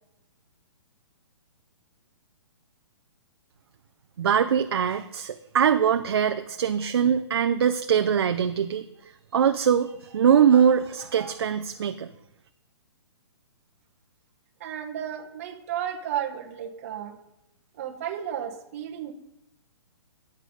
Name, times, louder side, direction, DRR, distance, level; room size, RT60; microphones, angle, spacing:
voice 1, 4.2-8.9 9.3-12.1, right 8 dB, 55° right, 8 dB, 0.6 m, -22 dB
voice 2, 14.6-17.2 17.7-19.1, right 9 dB, 30° right, 3 dB, 1.1 m, -33 dB
9.4 x 8.4 x 5.3 m, 0.87 s
hypercardioid pair, 175°, 15 cm